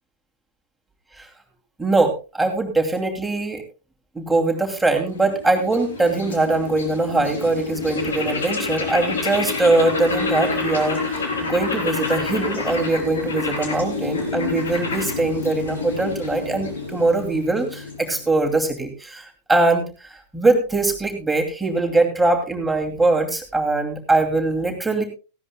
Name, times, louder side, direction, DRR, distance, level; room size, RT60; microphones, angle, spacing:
voice 1, 1.8-3.6 4.1-25.0, right 2 dB, 5° right, 2 dB, 2.7 m, -22 dB
sound 1, 5.0-18.3, left 4 dB, 65° left, 3.8 m, -28 dB
18.0 x 15.5 x 2.2 m, 0.33 s
figure-of-eight pair, 90°, 0 cm